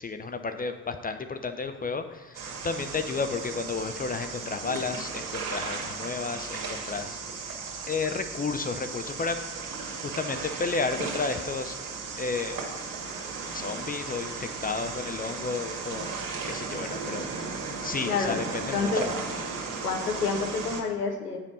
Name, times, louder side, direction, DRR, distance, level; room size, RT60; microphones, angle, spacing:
voice 1, 0.0-7.2 7.4-7.6 7.9-9.4 9.9-11.8 12.2-12.6 13.5-16.1 16.4-17.2 17.8-19.1, left 4 dB, 20° left, 8 dB, 0.5 m, -32 dB
sound 1, 2.3-20.8, right 4 dB, 45° right, 1.7 m, -35 dB
voice 2, 18.1-18.4 18.7-19.1 19.8-21.4, left 5 dB, 90° left, 5 dB, 0.8 m, -28 dB
7.2 x 5.1 x 5.6 m, 1.2 s
figure-of-eight pair, 50°, 45 cm